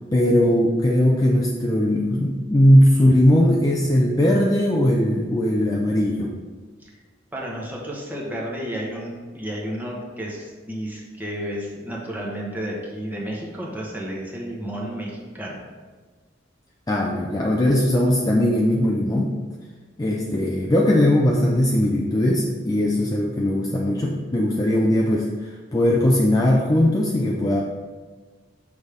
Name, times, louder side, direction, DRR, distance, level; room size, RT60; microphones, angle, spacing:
voice 1, 0.1-6.3 16.9-19.4 20.0-27.6, left 1 dB, 20° left, -2 dB, 0.4 m, -19 dB
voice 2, 7.3-15.6, equal, 10° right, -3 dB, 1.2 m, -32 dB
6.2 x 3.5 x 5.0 m, 1.4 s
head